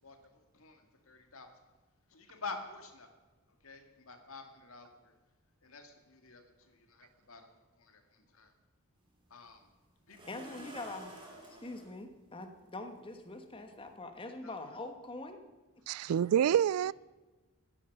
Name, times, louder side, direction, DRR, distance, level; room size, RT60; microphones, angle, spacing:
voice 1, 0.0-1.5 2.1-3.1 3.6-5.1 5.6-8.5 9.3-9.7 10.1-10.8 14.4-14.7 16.1-16.2 16.8-16.9, left 3 dB, 70° left, 1.9 m, -49 dB
sound 1, 9.0-9.1 10.1-11.9 13.1-13.2 13.7-13.9, right 1 dB, 20° right, 3.2 m, -51 dB
voice 2, 10.3-11.1 11.6-15.4, left 2 dB, 25° left, 1.3 m, -44 dB
voice 3, 15.9-16.9, right 9 dB, 85° right, 0.3 m, -27 dB
13.5 x 10.0 x 6.6 m
head